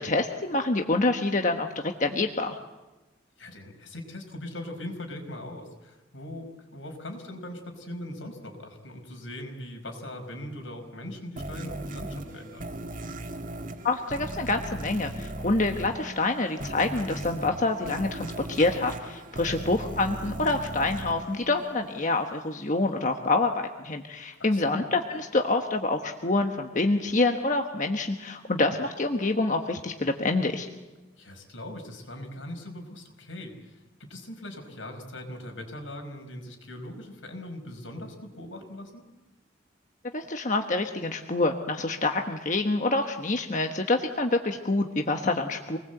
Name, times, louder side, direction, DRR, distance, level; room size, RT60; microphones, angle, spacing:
voice 1, 0.0-2.6 13.8-30.7 40.1-45.8, left 2 dB, 40° left, 4 dB, 1.3 m, -27 dB
voice 2, 3.4-12.7 19.5-19.6 24.4-24.8 31.2-39.1, left 1 dB, 85° left, 4 dB, 5.1 m, -40 dB
sound 1, 11.4-22.1, right 1 dB, 45° right, 1.9 m, -38 dB
26.5 x 20.0 x 8.0 m, 1.1 s
head